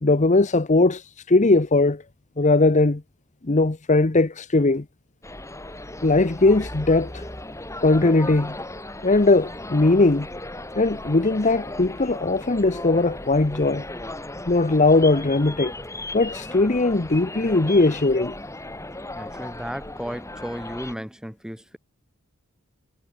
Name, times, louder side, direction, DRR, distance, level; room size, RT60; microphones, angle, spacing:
voice 1, 0.0-2.0 2.4-3.0 3.4-4.8 6.0-7.2 7.8-8.6 9.0-10.3 10.8-13.8 14.5-15.7 16.1-18.3, left 2 dB, 35° left, 0.9 m, -19 dB
sound 1, 5.2-20.9, left 1 dB, 15° left, 7.0 m, -36 dB
voice 2, 19.1-21.8, equal, 5° right, 4.6 m, -34 dB
head